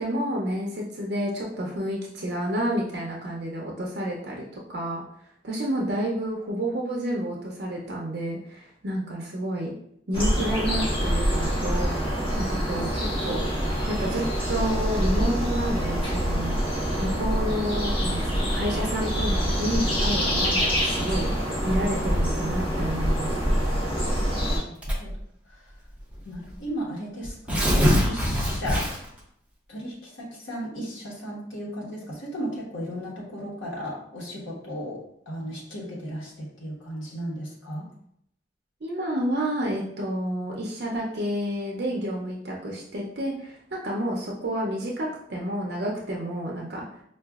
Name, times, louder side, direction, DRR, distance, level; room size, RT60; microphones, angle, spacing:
voice 1, 0.0-4.4 4.7-5.0 5.4-9.7 10.1-12.0 12.4-13.5 13.9-16.5 17.0-21.3 21.6-23.6 38.8-46.9, equal, 55° right, -3 dB, 0.6 m, -30 dB
sound 1, 10.1-24.6, equal, 30° left, 0.9 m, -25 dB
voice 2, 24.7-25.1 25.5-25.7 26.2-28.9 29.7-37.9, equal, 90° left, -5 dB, 1.1 m, -35 dB
Tearing, 24.8-25.2 26.1-26.2 26.5-26.6 27.2-29.2, equal, 5° right, 0.5 m, -23 dB
4.7 x 2.4 x 2.3 m, 0.70 s
head